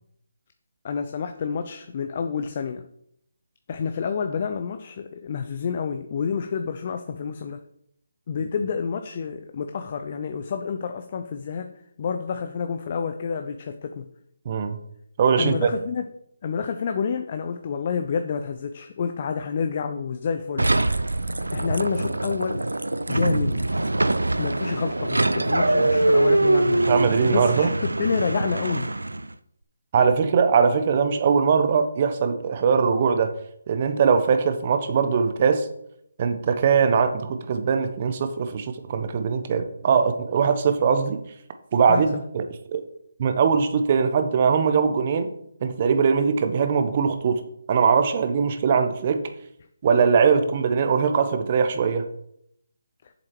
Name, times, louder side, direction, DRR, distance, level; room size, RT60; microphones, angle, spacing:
voice 1, 0.8-2.9 3.7-7.6 8.3-11.7 12.0-14.1 15.4-16.1 16.4-20.7 21.5-22.7 23.1-23.6 24.4-26.9 27.3-28.9 41.9-42.2, left 6 dB, 40° left, 7 dB, 0.6 m, -29 dB
voice 2, 14.4-14.8 15.2-15.7 26.8-27.7 29.9-33.3 33.7-35.7 36.2-41.2 41.7-42.8 43.2-45.3 45.6-47.4 47.7-49.2 49.8-52.1, right 6 dB, 35° right, 8 dB, 1.1 m, -21 dB
sound 1, 20.6-29.3, right 2 dB, 85° right, 0.5 m, -23 dB
7.8 x 7.1 x 4.5 m, 0.72 s
figure-of-eight pair, 150°, 0 cm